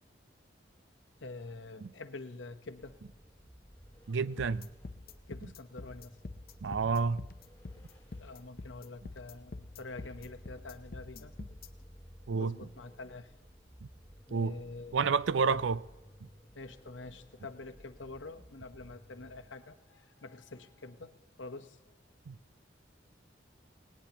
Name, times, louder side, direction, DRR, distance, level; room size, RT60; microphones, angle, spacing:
voice 1, 1.2-3.0 5.3-6.2 8.2-11.3 12.4-13.3 14.3-15.0 15.5-15.6 16.5-21.8, left 3 dB, 85° left, 1.0 m, -46 dB
sound 1, 2.7-19.5, equal, 10° left, 2.3 m, -56 dB
voice 2, 4.1-4.7 6.6-7.2 12.3-12.6 14.3-14.6 14.9-15.8 22.3-22.4, right 5 dB, 85° right, 0.5 m, -29 dB
sound 2, 4.4-11.7, left 3 dB, 50° left, 0.7 m, -45 dB
18.5 x 18.5 x 2.9 m
head